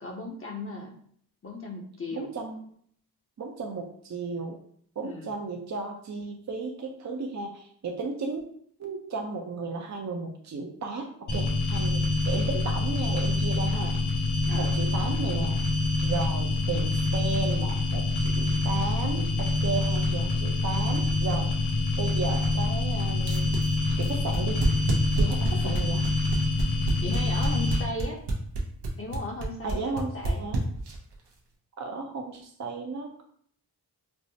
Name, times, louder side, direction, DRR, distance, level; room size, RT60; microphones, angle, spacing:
voice 1, 0.0-0.9 1.4-2.3 5.0-5.3 14.4-14.8 25.5-25.8 27.0-28.2 29.0-30.4, left 2 dB, 35° left, 0 dB, 0.7 m, -36 dB
voice 2, 2.1-2.6 3.4-4.6 5.0-8.4 8.8-13.9 14.5-15.6 16.0-21.5 22.0-23.6 24.0-24.7 25.2-26.0 29.6-30.6 31.8-33.2, right 4 dB, 45° right, 2 dB, 0.6 m, -34 dB
sound 1, 11.3-27.8, left 3 dB, 75° left, 1.2 m, -26 dB
sound 2, 23.2-31.1, right 2 dB, 90° right, 0.7 m, -28 dB
4.4 x 2.0 x 2.7 m, 0.62 s
cardioid pair, 50°, 40 cm